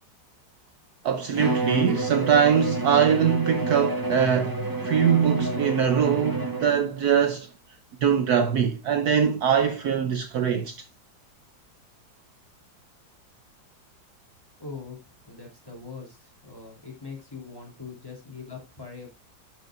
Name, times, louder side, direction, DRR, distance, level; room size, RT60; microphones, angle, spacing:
voice 1, 1.0-7.5 8.0-10.9, right 7 dB, 65° right, 1.1 m, -22 dB
Bowed string instrument, 1.3-7.0, right 2 dB, 15° right, 1.1 m, -29 dB
voice 2, 14.6-15.0 15.3-19.1, left 4 dB, 10° left, 3.2 m, -41 dB
11.5 x 6.3 x 2.5 m
omnidirectional pair, 2.0 m